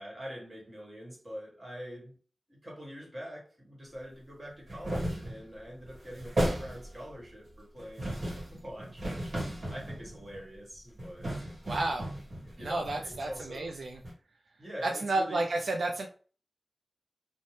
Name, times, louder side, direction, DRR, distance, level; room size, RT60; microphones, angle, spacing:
voice 1, 0.0-2.2 2.5-9.3 9.7-11.3 12.4-13.7 14.6-15.5, equal, 35° right, 1.3 m, -44 dB
sound 1, 4.7-5.5 5.8-7.1 7.8-10.5 11.0-13.7 14.0-14.1, right 1 dB, 55° right, 1.1 m, -35 dB
voice 2, 11.7-12.1 12.6-14.0 14.8-16.1, right 2 dB, 80° right, 0.3 m, -31 dB
2.7 x 2.0 x 3.1 m
wide cardioid pair, 60°, 0 cm